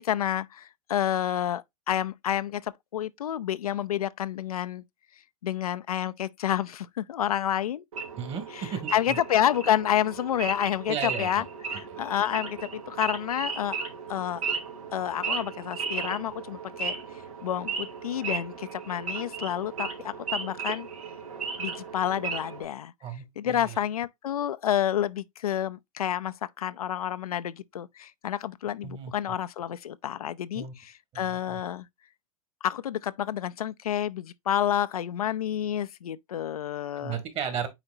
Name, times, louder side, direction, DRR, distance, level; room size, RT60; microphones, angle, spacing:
voice 1, 0.0-4.8 5.4-7.8 8.5-11.4 11.7-13.8 14.1-14.4 14.9-16.9 17.4-20.9 21.6-22.9 23.4-31.9 32.6-37.2, left 10 dB, 80° left, 0.6 m, -29 dB
Wild animals / Idling, 7.9-22.6, right 5 dB, 75° right, 2.6 m, -35 dB
voice 2, 8.2-9.2 10.9-11.4 12.0-12.1 23.0-23.8 28.8-29.1 30.5-30.7 31.1-31.6 37.0-37.7, right 7 dB, 30° right, 2.3 m, -35 dB
9.0 x 4.4 x 2.7 m
hypercardioid pair, 110°, 19 cm